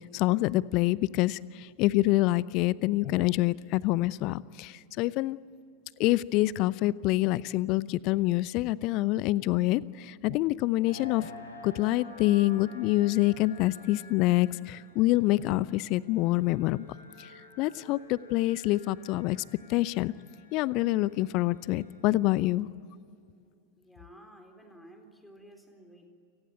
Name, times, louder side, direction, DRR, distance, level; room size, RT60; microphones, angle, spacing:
voice 1, 0.1-5.4 6.0-11.3 11.6-16.9 17.2-17.3 17.6-19.4 19.7-20.1 20.5-22.7, left 18 dB, 40° left, 21 dB, 0.6 m, -26 dB
sound 1, 10.8-22.3, left 2 dB, 75° left, 5.6 m, -51 dB
voice 2, 23.7-26.1, right 1 dB, 5° left, 4 dB, 4.1 m, -53 dB
29.5 x 18.5 x 8.8 m, 2.4 s
figure-of-eight pair, 90°, 0 cm